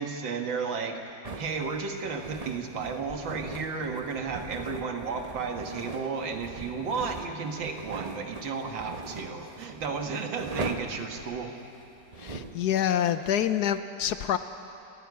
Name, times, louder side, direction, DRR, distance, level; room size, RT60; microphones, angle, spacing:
voice 1, 0.0-11.5, right 5 dB, 90° right, 4 dB, 2.3 m, -33 dB
sound 1, 1.2-12.6, right 3 dB, 35° right, 0.6 m, -40 dB
voice 2, 12.2-14.4, left 10 dB, 70° left, 11 dB, 1.1 m, -27 dB
28.5 x 10.0 x 9.6 m, 2.7 s
omnidirectional pair, 2.0 m